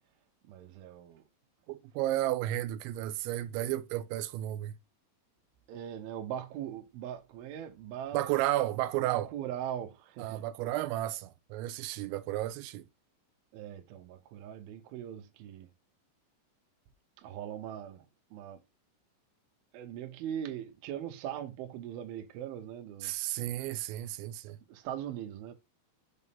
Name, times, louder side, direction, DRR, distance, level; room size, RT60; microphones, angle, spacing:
voice 1, 0.4-1.2 5.7-8.3 9.0-10.5 13.5-15.7 17.2-18.1 18.3-18.6 19.7-23.1 24.7-25.5, right 10 dB, 75° right, 2.4 m, -40 dB
voice 2, 1.7-4.7 8.1-9.3 10.2-12.9 23.0-24.6, right 14 dB, 90° right, 2.9 m, -33 dB
6.5 x 3.6 x 4.1 m
omnidirectional pair, 5.1 m